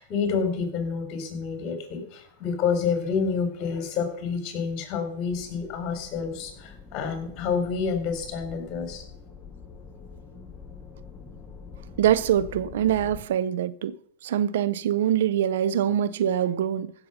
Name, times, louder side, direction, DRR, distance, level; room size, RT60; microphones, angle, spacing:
voice 1, 0.0-9.0, left 6 dB, 40° left, 3.9 m, -28 dB
sound 1, 5.3-13.2, left 5 dB, 15° left, 1.8 m, -45 dB
voice 2, 12.0-14.0 14.2-16.9, right 10 dB, 75° right, 0.6 m, -24 dB
16.0 x 7.0 x 5.7 m
hypercardioid pair, 125°, 0 cm